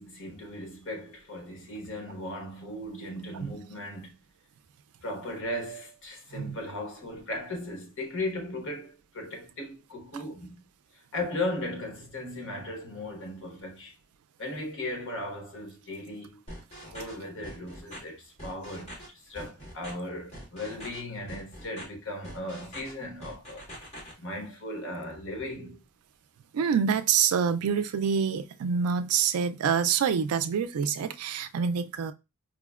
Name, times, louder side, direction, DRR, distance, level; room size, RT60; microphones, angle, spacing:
voice 1, 0.0-4.1 5.0-10.6 10.9-13.9 14.4-16.4 16.9-23.7 24.2-25.8, left 1 dB, 60° left, 1.1 m, -37 dB
sound 1, 16.5-17.1 17.4-18.0 18.4-19.1 19.3-19.9 20.3-21.0 21.3-21.8 22.2-22.9 23.2-24.1, equal, 30° left, 1.5 m, -43 dB
voice 2, 26.5-32.1, right 7 dB, 75° right, 0.4 m, -26 dB
4.8 x 2.1 x 2.3 m
head